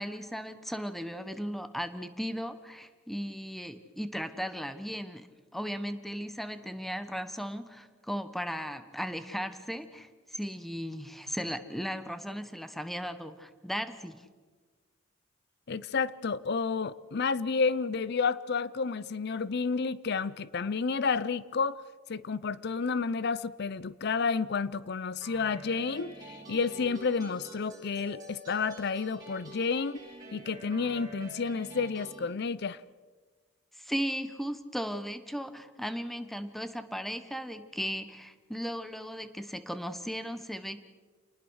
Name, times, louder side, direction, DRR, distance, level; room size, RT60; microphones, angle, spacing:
voice 1, 0.0-5.3 5.5-14.2 33.8-40.8, equal, ahead, 1.1 m, -36 dB
voice 2, 15.7-21.8 22.1-30.0 30.3-32.8, left 5 dB, 55° left, 0.6 m, -30 dB
sound 1, 25.2-32.2, right 1 dB, 20° right, 7.3 m, -47 dB
28.0 x 19.5 x 6.4 m
head